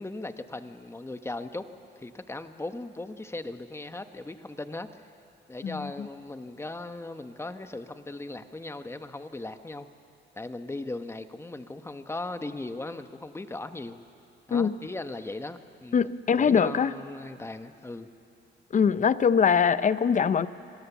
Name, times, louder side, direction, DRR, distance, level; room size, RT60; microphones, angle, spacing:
voice 1, 0.0-1.7 2.0-5.0 5.5-9.9 10.3-14.0 14.5-16.0 16.3-18.1, left 2 dB, 15° left, 9 dB, 1.1 m, -38 dB
voice 2, 15.9-16.9 18.7-20.5, left 6 dB, 40° left, 15 dB, 0.7 m, -22 dB
25.5 x 18.0 x 7.3 m, 2.5 s
cardioid pair, 90°, 20 cm